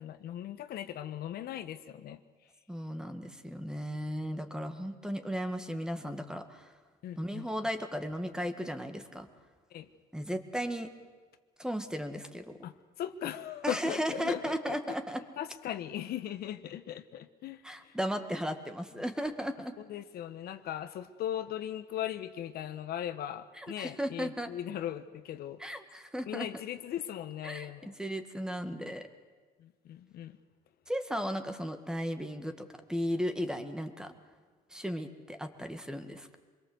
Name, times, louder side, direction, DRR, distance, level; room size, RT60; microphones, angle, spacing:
voice 1, 0.0-2.2 7.0-7.4 9.7-9.9 12.6-12.7 13.0-14.8 15.4-17.9 19.9-25.6 26.3-27.9 29.6-30.4, left 11 dB, 70° left, 10 dB, 1.3 m, -38 dB
voice 2, 2.7-6.7 7.2-9.3 10.1-10.9 11.6-12.6 13.6-15.2 17.6-19.7 23.6-24.5 25.6-26.5 27.4-29.1 30.9-34.1 34.7-36.4, equal, 5° right, 7 dB, 1.9 m, -35 dB
25.5 x 22.0 x 8.0 m, 1.5 s
cardioid pair, 110°, 17 cm